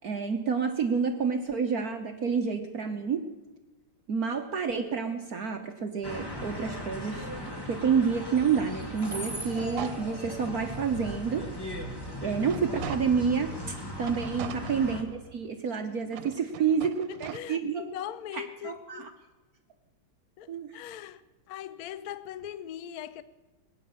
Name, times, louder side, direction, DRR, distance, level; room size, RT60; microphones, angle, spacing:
voice 1, 0.0-3.2 4.1-7.3 7.7-11.4 12.2-17.8 18.3-19.1 20.5-20.8, right 6 dB, 55° right, 1.3 m, -29 dB
sound 1, 6.0-15.0, left 1 dB, 10° left, 1.8 m, -37 dB
sound 2, 9.0-10.6 11.1-11.2 11.6-13.4 14.0-15.5 16.0-17.4, right 11 dB, 90° right, 1.6 m, -43 dB
voice 2, 16.8-19.1 20.4-21.2 21.5-23.2, left 11 dB, 65° left, 0.9 m, -41 dB
21.5 x 9.5 x 7.0 m
omnidirectional pair, 2.3 m